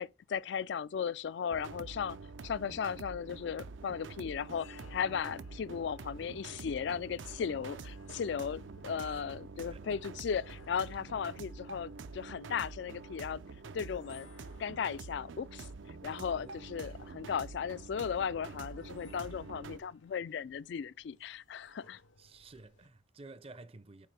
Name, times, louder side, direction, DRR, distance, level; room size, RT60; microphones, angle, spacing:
voice 1, 0.0-2.2 2.4-13.4 13.7-14.3 14.6-15.7 16.0-22.0, left 7 dB, 60° left, 0.3 m, -36 dB
sound 1, 1.5-19.8, right 4 dB, 75° right, 0.5 m, -47 dB
sound 2, 4.3-22.9, left 4 dB, 90° left, 1.0 m, -62 dB
voice 2, 22.2-24.1, right 3 dB, 30° right, 0.5 m, -52 dB
7.6 x 4.6 x 3.3 m
head